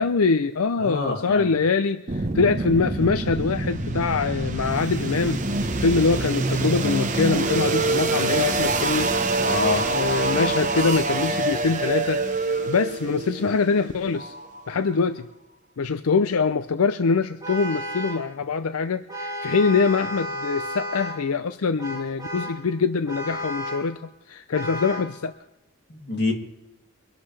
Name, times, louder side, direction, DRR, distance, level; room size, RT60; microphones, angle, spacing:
voice 1, 0.0-9.1 9.9-14.3 14.7-15.3 15.8-24.0 24.3-25.3, left 4 dB, 80° left, 11 dB, 0.5 m, -24 dB
voice 2, 0.8-1.5 9.4-9.9 25.9-26.3, left 3 dB, 50° left, 1 dB, 2.5 m, -26 dB
sound 1, 2.1-14.9, right 2 dB, 35° right, 1.0 m, -25 dB
Vehicle horn car horn honking, 17.4-18.3 19.1-21.3 21.8-22.6 23.1-23.9 24.5-25.1, equal, 15° right, 4.7 m, -32 dB
24.0 x 11.5 x 3.3 m, 0.96 s
head